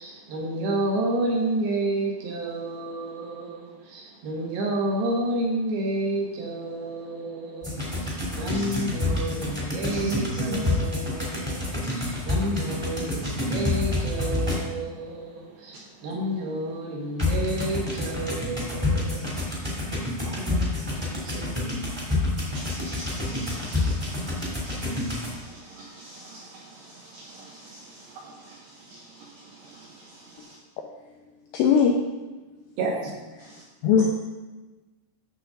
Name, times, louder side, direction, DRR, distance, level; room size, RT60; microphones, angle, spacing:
voice 1, 0.0-22.1 32.8-33.1, right 1 dB, 70° right, 2.6 m, -30 dB
sound 1, 7.6-14.9 17.2-25.3, left 2 dB, 10° right, 1.1 m, -28 dB
voice 2, 9.9-10.8 22.5-30.6 33.4-33.6, right 3 dB, 85° right, 2.3 m, -42 dB
voice 3, 31.5-32.0 33.8-34.1, left 7 dB, 90° left, 2.5 m, -18 dB
11.5 x 6.9 x 3.9 m
omnidirectional pair, 5.9 m